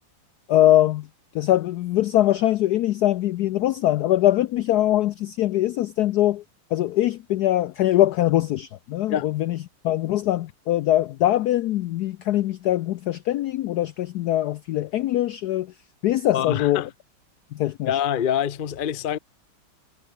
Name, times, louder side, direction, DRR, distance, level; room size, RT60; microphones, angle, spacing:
voice 1, 0.5-1.1 1.3-6.4 6.7-9.6 9.8-15.7 16.0-16.9 17.5-17.9, left 13 dB, 85° left, 0.8 m, -22 dB
voice 2, 16.3-16.9 17.9-19.2, left 9 dB, 55° left, 0.5 m, -25 dB
omnidirectional pair, 2.3 m